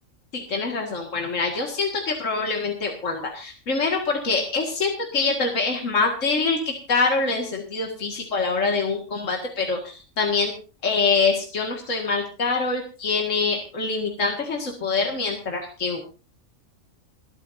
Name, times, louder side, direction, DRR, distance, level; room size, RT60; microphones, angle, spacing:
voice 1, 0.3-10.5 10.8-16.0, left 4 dB, 70° left, 1 dB, 2.3 m, -25 dB
28.5 x 9.8 x 2.6 m, 0.34 s
omnidirectional pair, 1.3 m